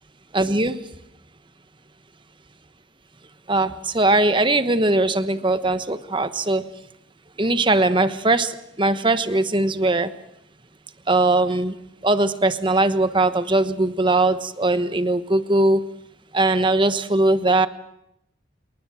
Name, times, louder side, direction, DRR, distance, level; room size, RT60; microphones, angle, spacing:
voice 1, 0.3-0.8 3.5-6.6 7.4-8.5 8.8-10.1 11.1-11.7 12.0-15.8 16.3-17.7, right 2 dB, 25° right, 11 dB, 1.2 m, -20 dB
27.5 x 23.0 x 6.4 m, 0.79 s
head